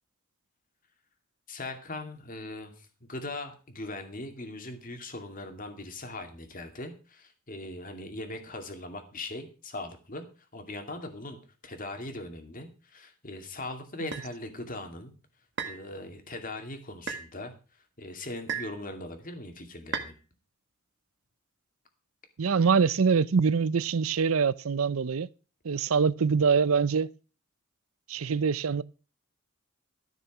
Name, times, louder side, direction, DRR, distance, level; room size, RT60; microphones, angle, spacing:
voice 1, 1.5-11.4 11.6-15.1 15.6-20.1, left 2 dB, 40° left, 2.4 m, -40 dB
sound 1, 14.1-14.3 15.6-15.8 17.1-17.3 18.5-18.8 19.9-20.1, right 6 dB, 55° right, 1.6 m, -34 dB
voice 2, 22.4-25.3 25.6-27.1 28.1-28.8, right 5 dB, 80° right, 0.6 m, -24 dB
13.5 x 6.7 x 6.1 m
head